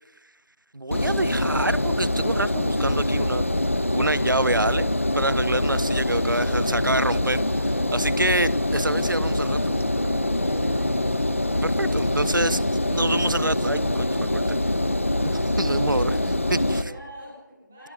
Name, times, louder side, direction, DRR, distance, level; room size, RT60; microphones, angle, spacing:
voice 1, 0.7-3.4 3.9-9.8 11.5-12.6 12.9-14.6 15.2-16.8, right 2 dB, 80° right, 18 dB, 1.0 m, -27 dB
Engine, 0.9-16.8, left 1 dB, 40° left, 1.3 m, -24 dB
Bass guitar, 2.7-12.5, equal, 30° right, 4.8 m, -40 dB
voice 2, 10.1-11.1 16.8-17.9, right 1 dB, ahead, -10 dB, 1.3 m, -44 dB
28.0 x 13.5 x 9.3 m, 1.0 s
figure-of-eight pair, 180°, 11 cm